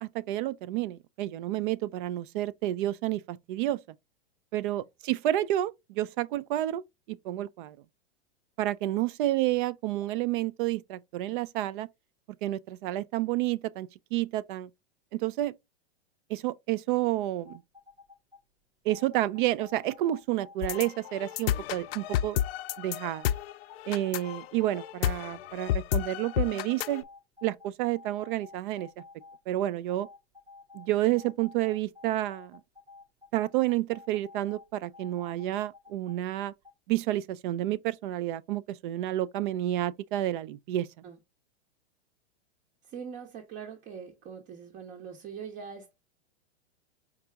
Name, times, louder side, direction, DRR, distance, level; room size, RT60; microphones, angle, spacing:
voice 1, 0.0-3.8 4.5-7.8 8.6-11.9 12.4-14.7 15.1-15.5 16.3-17.6 18.9-22.4 22.8-23.3 23.9-27.0 27.4-28.9 29.5-30.1 30.7-32.6 33.3-36.5 36.9-40.9, right 14 dB, 50° right, 0.4 m, -30 dB
sound 1, 17.5-18.4 18.9-21.4 21.9-24.3 24.6-25.7 26.2-29.4 29.9-36.2 36.6-36.7, left 4 dB, 10° right, 1.0 m, -52 dB
sound 2, 20.6-27.0, left 12 dB, 65° left, 0.5 m, -31 dB
voice 2, 42.8-45.9, right 7 dB, 35° right, 1.0 m, -42 dB
4.7 x 2.7 x 3.4 m
hypercardioid pair, 120°, 33 cm